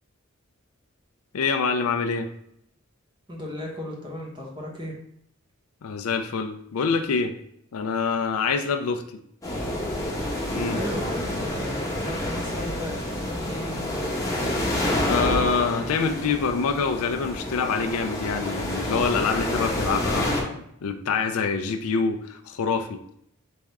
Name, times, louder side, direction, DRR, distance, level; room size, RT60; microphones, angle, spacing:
voice 1, 1.3-2.3 5.8-7.3 7.7-9.0 10.5-10.8 15.1-23.0, left 5 dB, 85° left, 6 dB, 0.4 m, -26 dB
voice 2, 3.3-4.9 10.5-14.0, left 1 dB, 20° right, -2 dB, 1.1 m, -35 dB
sound 1, 9.4-20.4, left 1 dB, 15° left, 1.0 m, -28 dB
4.2 x 3.6 x 3.4 m, 0.71 s
head